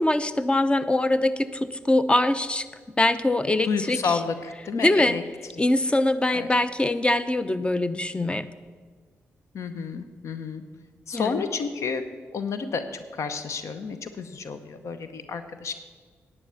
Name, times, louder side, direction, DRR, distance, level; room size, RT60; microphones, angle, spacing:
voice 1, 0.0-2.7 3.0-4.0 4.8-5.2 5.6-8.5 11.1-11.4, left 1 dB, 20° left, 14 dB, 0.7 m, -23 dB
voice 2, 3.6-5.2 5.5-5.6 6.3-6.5 9.5-10.6 11.1-12.9 13.1-15.7, left 5 dB, 70° left, 10 dB, 0.8 m, -30 dB
10.5 x 8.2 x 6.8 m, 1.5 s
supercardioid pair, 50°, 5 cm